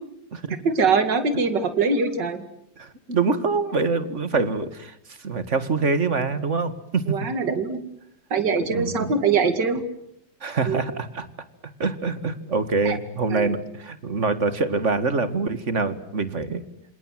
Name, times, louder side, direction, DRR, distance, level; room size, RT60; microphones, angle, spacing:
voice 1, 0.6-2.4 7.1-7.8 8.3-9.8 10.7-10.8 12.8-13.0 13.3-13.5, right 4 dB, 70° right, 9 dB, 3.0 m, -22 dB
voice 2, 2.8-4.9 5.2-7.0 8.7-9.1 10.4-11.3 11.8-16.6, right 4 dB, 40° right, 11 dB, 2.2 m, -25 dB
28.0 x 27.0 x 7.7 m, 0.75 s
omnidirectional pair, 2.0 m